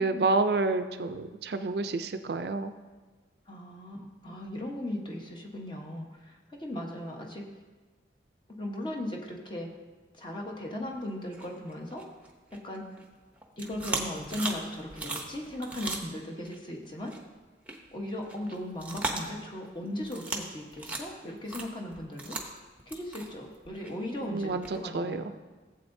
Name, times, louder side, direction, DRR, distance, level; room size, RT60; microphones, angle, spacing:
voice 1, 0.0-2.7 24.3-25.3, right 3 dB, 60° right, 9 dB, 0.4 m, -29 dB
voice 2, 3.5-7.4 8.6-9.7 10.1-12.1 12.5-13.0 13.6-17.1 17.9-22.4 22.9-25.2, left 1 dB, 25° left, 0 dB, 1.1 m, -37 dB
sound 1, 11.3-13.0 13.4-16.6 17.0-17.2 17.7-17.8 18.0-19.7 20.0-20.5 20.7-24.8, right 2 dB, 10° right, 0.7 m, -37 dB
15.5 x 7.8 x 2.7 m, 1.3 s
head